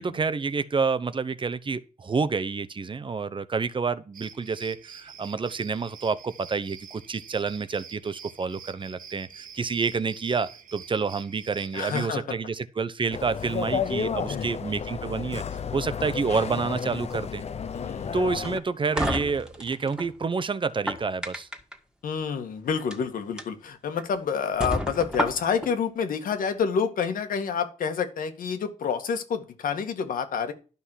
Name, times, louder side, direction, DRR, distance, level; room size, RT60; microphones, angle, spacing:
voice 1, 0.0-15.4 15.7-17.4 18.1-21.5, right 4 dB, 35° right, 0.9 m, -28 dB
sound 1, 4.1-12.1, right 7 dB, 80° right, 1.5 m, -47 dB
voice 2, 11.7-12.2 14.1-14.5 17.7-18.1 22.0-30.5, left 6 dB, 90° left, 1.9 m, -28 dB
sound 2, 13.1-18.6, left 6 dB, 50° left, 0.9 m, -32 dB
sound 3, 18.4-20.1 20.7-21.7 22.7-23.0 23.4-23.5 24.0-24.1 24.6-25.7, equal, 5° right, 1.9 m, -30 dB
12.0 x 5.8 x 6.3 m
cardioid pair, 105°, 14 cm